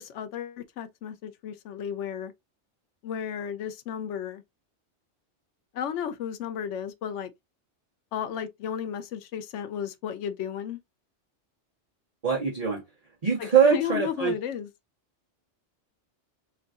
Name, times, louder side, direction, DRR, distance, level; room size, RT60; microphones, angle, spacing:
voice 1, 0.0-2.3 3.0-4.4 5.7-7.3 8.1-10.8 13.4-14.7, left 8 dB, 85° left, 0.9 m, -33 dB
voice 2, 12.2-12.8 13.2-14.3, right 6 dB, 35° right, 1.2 m, -22 dB
4.6 x 3.8 x 2.4 m
omnidirectional pair, 1.2 m